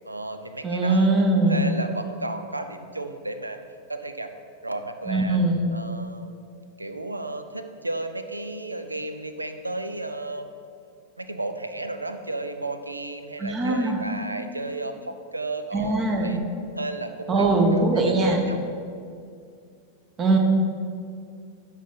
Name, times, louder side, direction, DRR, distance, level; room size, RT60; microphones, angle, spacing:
voice 1, 0.0-3.6 3.9-4.3 4.6-5.4 5.7-6.3 6.8-10.5 11.2-16.4 16.7-18.7, right 2 dB, 85° right, 8 dB, 0.5 m, -33 dB
voice 2, 0.6-1.6 5.1-5.6 13.4-14.0 15.7-16.3 17.3-18.4 20.2-20.4, right 2 dB, 25° right, 3 dB, 1.0 m, -21 dB
11.0 x 4.1 x 4.0 m, 2.3 s
figure-of-eight pair, 90°, 0 cm